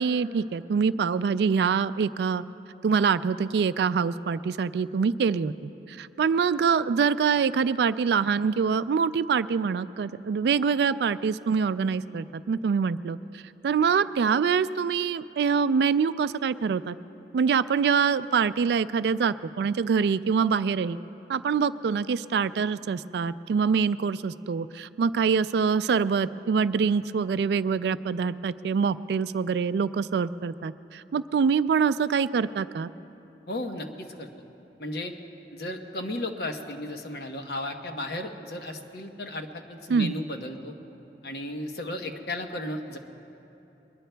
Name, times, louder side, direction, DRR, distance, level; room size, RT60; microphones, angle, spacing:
voice 1, 0.0-2.4 2.8-5.5 5.9-17.0 17.3-21.0 21.3-32.9 39.9-40.1, right 6 dB, 70° right, 15 dB, 0.3 m, -25 dB
voice 2, 33.5-34.3 34.8-35.1 35.5-40.7 41.2-43.0, left 1 dB, 65° left, 4 dB, 1.0 m, -34 dB
22.5 x 20.5 x 2.3 m, 2.9 s
head